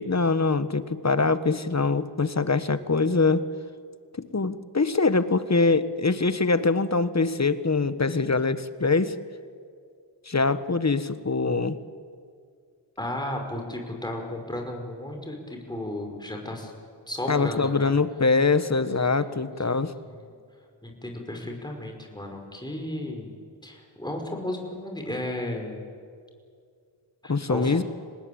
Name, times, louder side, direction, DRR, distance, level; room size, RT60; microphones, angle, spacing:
voice 1, 0.0-3.5 4.3-9.2 10.3-11.8 17.3-19.9 27.3-27.8, left 3 dB, 35° left, 13 dB, 1.4 m, -23 dB
voice 2, 13.0-16.7 17.1-17.9 19.2-19.3 19.7-20.3 20.8-23.3 23.6-25.8 27.2-27.8, left 1 dB, 10° left, 2 dB, 5.4 m, -34 dB
26.0 x 19.5 x 8.8 m, 2.2 s
cardioid pair, 45°, 46 cm